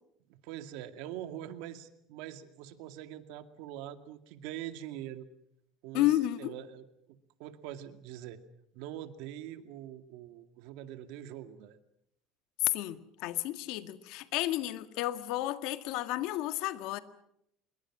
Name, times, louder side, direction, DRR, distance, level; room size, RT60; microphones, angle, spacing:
voice 1, 0.3-5.3 5.8-8.4 8.7-11.8, right 12 dB, 75° right, 9 dB, 2.2 m, -44 dB
voice 2, 5.9-6.5 12.6-17.0, left 15 dB, 70° left, 10 dB, 1.9 m, -31 dB
27.0 x 22.5 x 6.2 m, 0.77 s
cardioid pair, 135°, 0 cm